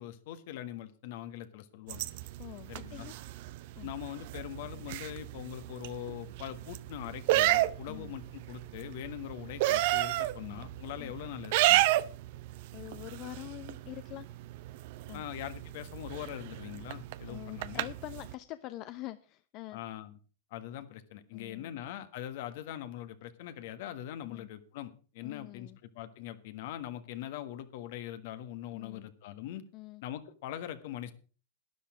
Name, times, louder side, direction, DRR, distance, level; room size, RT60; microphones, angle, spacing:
voice 1, 0.0-2.1 2.7-3.1 3.8-11.9 15.1-17.9 19.7-20.1 20.5-25.7 25.9-29.6 30.0-31.1, left 12 dB, 65° left, 11 dB, 1.6 m, -42 dB
sound 1, 1.9-18.3, right 16 dB, 60° right, 0.7 m, -33 dB
voice 2, 2.4-3.2 3.8-3.9 7.9-8.1 10.4-10.6 11.0-11.1 12.7-14.4 15.1-15.2 17.3-19.8 21.3-21.8 24.2-24.5 25.2-25.8 28.7-29.1 29.7-30.0, left 16 dB, 45° left, 13 dB, 0.7 m, -45 dB
12.5 x 10.5 x 5.0 m, 0.38 s
hypercardioid pair, 105°, 0 cm